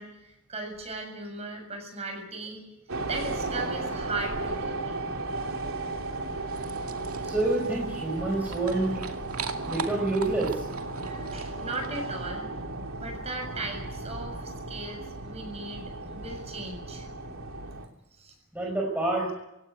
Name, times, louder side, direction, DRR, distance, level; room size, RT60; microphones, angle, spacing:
voice 1, 0.0-2.7 3.0-5.0 11.0-12.5 13.0-17.1 18.1-18.3, right 2 dB, 30° right, 4 dB, 7.4 m, -38 dB
sound 1, 2.9-17.9, right 2 dB, 75° right, 3.2 m, -35 dB
sound 2, 6.5-12.1, right 5 dB, 90° right, 2.4 m, -41 dB
voice 2, 7.2-9.0 9.7-10.6 18.5-19.3, right 2 dB, 5° right, -1 dB, 4.6 m, -27 dB
27.5 x 17.0 x 9.7 m, 0.90 s
head